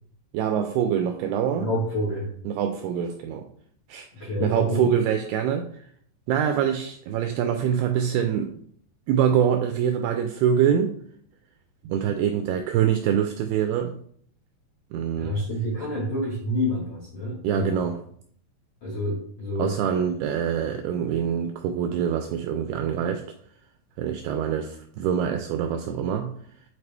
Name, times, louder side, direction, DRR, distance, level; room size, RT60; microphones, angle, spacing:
voice 1, 0.3-1.7 2.5-3.5 3.9-5.9 6.3-8.5 9.1-11.0 11.8-14.0 14.9-15.4 17.4-18.0 19.6-23.2 24.0-26.4, right 8 dB, 85° right, 6 dB, 2.3 m, -25 dB
voice 2, 1.6-2.3 4.1-4.9 15.1-17.8 18.8-19.8, equal, 65° left, -6 dB, 1.5 m, -28 dB
8.4 x 4.3 x 3.3 m, 0.62 s
omnidirectional pair, 5.1 m